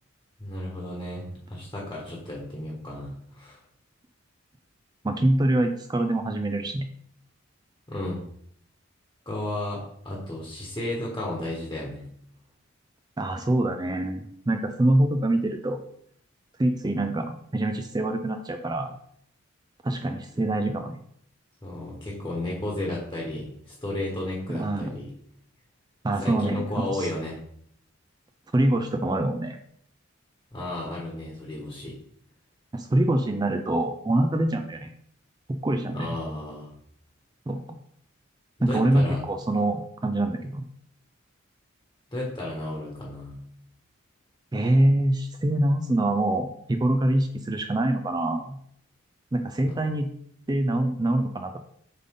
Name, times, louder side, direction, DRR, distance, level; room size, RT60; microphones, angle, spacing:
voice 1, 0.4-3.6 7.9-8.2 9.2-12.1 21.6-25.1 26.2-27.4 30.5-31.9 35.9-36.7 38.6-39.2 42.1-43.4 49.7-49.8, left 1 dB, 15° left, -3 dB, 1.3 m, -33 dB
voice 2, 5.0-6.9 13.2-15.8 16.6-18.9 19.8-21.0 24.5-24.9 26.0-26.6 26.9-27.1 28.5-29.6 32.7-34.9 35.5-36.1 37.5-37.8 38.6-40.6 44.5-48.6 49.3-50.1 50.5-51.6, right 1 dB, 20° right, 6 dB, 0.4 m, -25 dB
7.3 x 3.7 x 3.8 m, 0.67 s
head